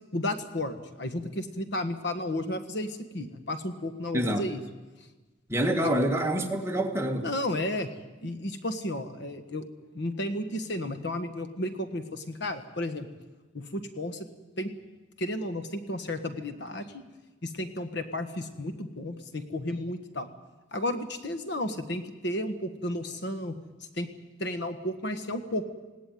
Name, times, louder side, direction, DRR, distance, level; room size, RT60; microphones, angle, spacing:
voice 1, 0.1-4.6 7.2-7.9 8.2-9.6 9.9-13.1 13.5-14.3 14.6-14.7 15.2-17.0 17.4-20.3 20.7-23.6 23.9-24.1 24.4-25.7, left 1 dB, 60° left, 9 dB, 1.5 m, -33 dB
voice 2, 4.1-4.5 5.5-7.3, right 1 dB, 15° right, 3 dB, 1.8 m, -26 dB
20.5 x 17.0 x 9.3 m, 1.2 s
head